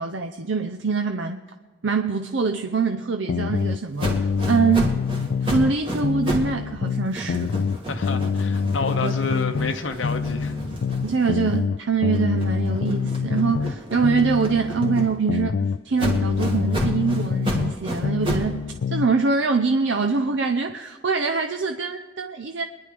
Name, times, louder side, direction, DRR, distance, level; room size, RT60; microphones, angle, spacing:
voice 1, 0.0-1.4 1.8-5.0 5.4-7.5 9.0-9.1 11.0-22.6, right 5 dB, 70° right, 6 dB, 0.6 m, -24 dB
sound 1, 3.3-5.8 6.0-9.8 10.0-13.8 14.0-17.8 18.0-19.1, left 5 dB, 65° left, 0.3 m, -25 dB
sound 2, 4.0-6.6 6.9-11.7 12.1-15.4 16.0-18.6, right 1 dB, 25° right, 1.9 m, -32 dB
voice 2, 7.9-10.6, left 4 dB, 85° left, 5 dB, 0.7 m, -29 dB
23.5 x 10.5 x 3.4 m, 1.5 s
head